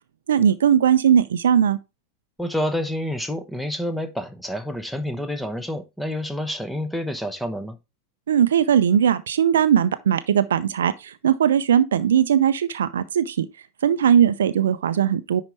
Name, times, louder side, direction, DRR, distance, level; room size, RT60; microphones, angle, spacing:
voice 1, 0.3-1.8 8.3-13.5 13.8-15.4, right 9 dB, 65° right, 0.6 m, -19 dB
voice 2, 2.4-7.8, left 1 dB, ahead, 1.0 m, -28 dB
10.5 x 4.1 x 3.3 m
figure-of-eight pair, 90°, 0 cm